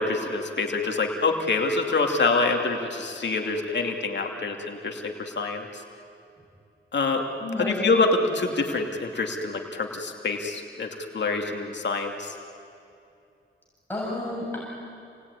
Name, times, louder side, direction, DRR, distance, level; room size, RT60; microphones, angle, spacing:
voice 1, 0.0-5.7 6.9-7.2 7.6-12.3, left 3 dB, 60° left, 2 dB, 2.6 m, -26 dB
voice 2, 7.4-7.9 13.9-14.6, left 2 dB, 10° left, -6 dB, 7.4 m, -30 dB
28.5 x 20.5 x 9.8 m, 2.6 s
wide cardioid pair, 95°, 20 cm